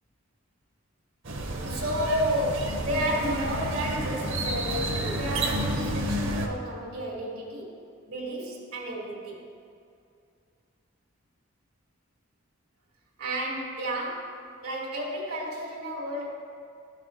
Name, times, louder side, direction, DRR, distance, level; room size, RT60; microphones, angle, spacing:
sound 1, 1.2-6.5, right 1 dB, 60° right, 0.8 m, -30 dB
voice 1, 1.6-7.8 8.0-9.4 13.2-14.4 14.6-16.3, equal, 90° right, -5 dB, 2.0 m, -31 dB
13.0 x 5.9 x 3.1 m, 2.4 s
head